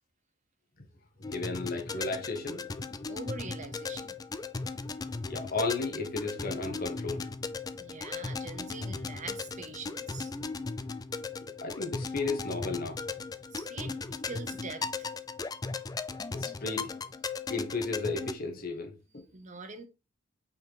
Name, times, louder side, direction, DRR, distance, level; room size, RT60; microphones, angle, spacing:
sound 1, 1.2-18.3, left 4 dB, 20° left, 0.3 m, -37 dB
voice 1, 1.3-2.6 5.3-7.3 11.6-13.0 16.3-17.0 17.5-19.2, left 3 dB, 50° left, 1.4 m, -34 dB
voice 2, 3.1-4.2 5.0-5.1 7.8-10.3 13.5-15.1 19.3-19.9, right 3 dB, 40° right, 0.8 m, -43 dB
5.6 x 4.5 x 3.8 m
head